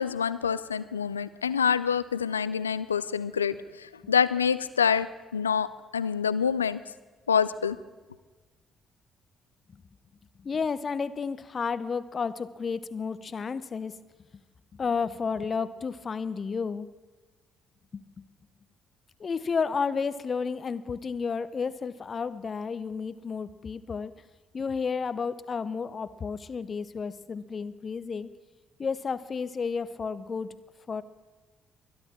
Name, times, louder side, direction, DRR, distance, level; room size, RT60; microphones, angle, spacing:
voice 1, 0.0-5.1 5.3-5.7 5.9-6.8 7.3-7.8, left 7 dB, 90° left, 16 dB, 0.4 m, -26 dB
voice 2, 10.4-13.9 14.7-16.9 17.9-18.0 19.2-24.1 24.5-28.3 28.8-30.5 30.9-31.0, left 5 dB, 40° left, 15 dB, 0.8 m, -31 dB
22.5 x 11.0 x 4.4 m, 1.3 s
figure-of-eight pair, 45°, 0 cm